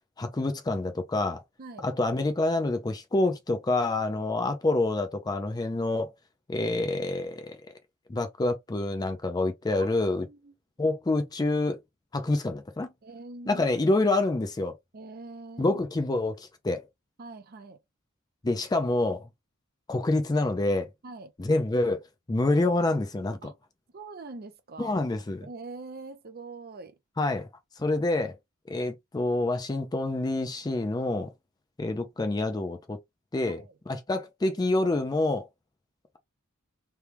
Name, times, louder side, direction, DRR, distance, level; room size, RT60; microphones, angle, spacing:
voice 1, 0.2-1.4 1.8-6.1 6.5-7.6 8.1-10.3 10.8-11.8 12.1-12.9 13.5-14.8 15.6-16.8 18.4-19.3 19.9-20.9 21.4-22.0 22.3-23.4 24.8-25.5 27.2-27.5 27.8-28.4 28.7-31.3 31.8-33.0 33.3-35.5, left 2 dB, 20° left, 0.4 m, -27 dB
voice 2, 9.8-10.5 13.0-14.0 14.9-15.8 17.2-17.8 21.0-21.3 23.4-23.6 23.9-25.1 25.4-27.0 33.5-33.7, right 3 dB, 45° right, 0.5 m, -43 dB
3.3 x 2.2 x 2.8 m
head